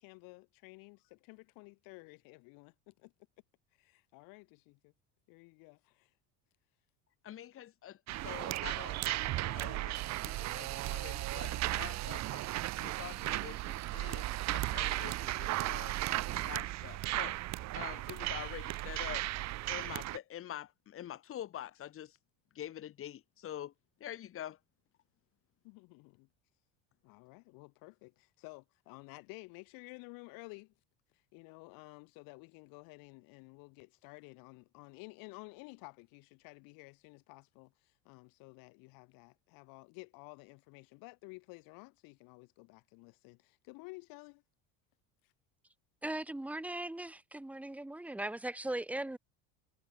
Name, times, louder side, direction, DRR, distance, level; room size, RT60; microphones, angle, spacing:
voice 1, 0.0-3.1 3.8-4.9 5.3-6.1 25.6-26.3 27.0-30.7 31.1-44.4 45.2-45.3, left 28 dB, 65° left, 6.6 m, -53 dB
voice 2, 7.2-9.0 9.4-10.0 10.2-12.4 12.8-15.9 16.3-17.4 17.8-19.3 19.7-22.2 22.5-23.7 24.0-24.6, left 11 dB, 35° left, 6.5 m, -46 dB
sound 1, 8.1-20.2, right 16 dB, 45° right, 2.8 m, -36 dB
voice 3, 46.0-49.2, right 1 dB, 5° right, 2.7 m, -39 dB
cardioid pair, 160°, 37 cm